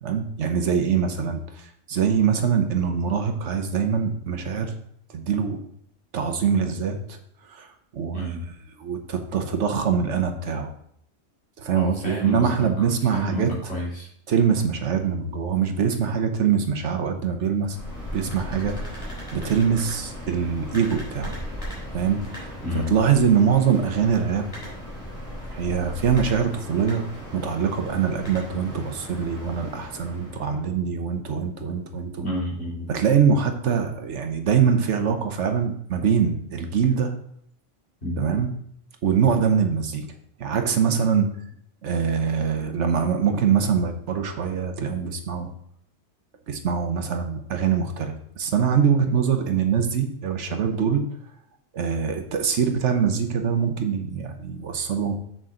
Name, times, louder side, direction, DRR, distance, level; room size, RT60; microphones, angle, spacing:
voice 1, 0.0-4.7 5.1-5.6 6.1-7.2 7.5-8.4 8.8-10.7 11.6-13.5 14.3-17.8 18.1-21.4 21.9-24.5 25.5-27.0 27.3-32.2 32.9-37.1 38.2-38.5 39.0-40.1 40.4-41.3 41.8-45.5 46.5-51.0 51.7-55.1, right 7 dB, 70° right, 6 dB, 1.2 m, -23 dB
voice 2, 8.1-8.4 11.7-12.9 13.1-14.1 22.6-22.9 32.2-32.9 38.0-38.2, equal, 55° left, -6 dB, 3.5 m, -29 dB
sound 1, 17.6-30.6, equal, 25° left, 3.7 m, -37 dB
7.6 x 6.8 x 3.8 m, 0.69 s
omnidirectional pair, 1.3 m